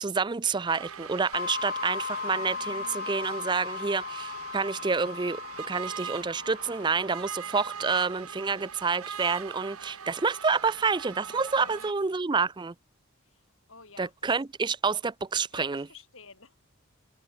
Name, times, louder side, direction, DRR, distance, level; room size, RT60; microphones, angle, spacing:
voice 1, 0.0-12.7 14.0-15.9, right 4 dB, 20° right, 0.4 m, -28 dB
sound 1, 0.7-11.9, right 7 dB, 80° right, 1.4 m, -41 dB
sound 2, 1.3-7.8, left 5 dB, 40° left, 3.4 m, -37 dB
voice 2, 11.6-12.2 13.2-13.4 13.7-14.3 15.5-16.6, left 4 dB, 65° left, 6.5 m, -52 dB
head